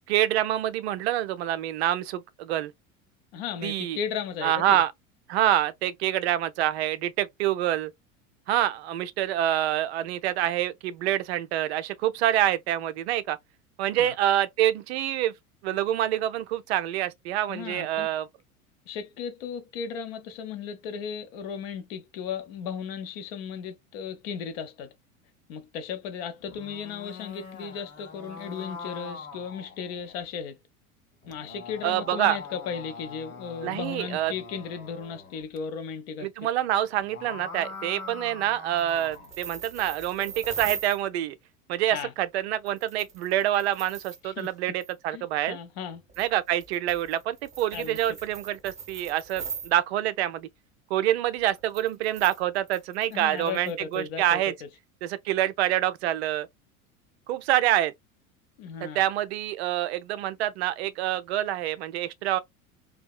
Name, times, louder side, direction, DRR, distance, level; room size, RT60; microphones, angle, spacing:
voice 1, 0.1-2.7 3.6-4.0 4.4-4.9 5.3-7.9 8.5-13.4 13.8-15.3 15.6-18.3 31.8-32.4 33.6-34.3 36.2-41.4 41.7-45.6 46.2-50.5 50.9-54.5 55.0-56.5 57.3-57.9 58.8-62.4, right 12 dB, 50° right, 0.5 m, -26 dB
voice 2, 3.3-4.8 14.0-14.1 17.5-18.1 18.9-24.9 25.5-30.6 31.3-36.3 41.9-42.1 44.2-44.5 45.1-45.2 45.5-46.0 47.7-48.0 53.1-54.7 58.6-59.0, left 7 dB, 45° left, 0.6 m, -36 dB
sound 1, 26.4-30.2 31.2-35.4 36.9-39.4, left 4 dB, 85° left, 0.8 m, -43 dB
sound 2, 38.7-41.0 42.7-44.5 44.8-44.9 46.1-49.7 51.4-54.0, right 6 dB, 15° right, 0.9 m, -40 dB
2.7 x 2.1 x 2.3 m
figure-of-eight pair, 80°, 42 cm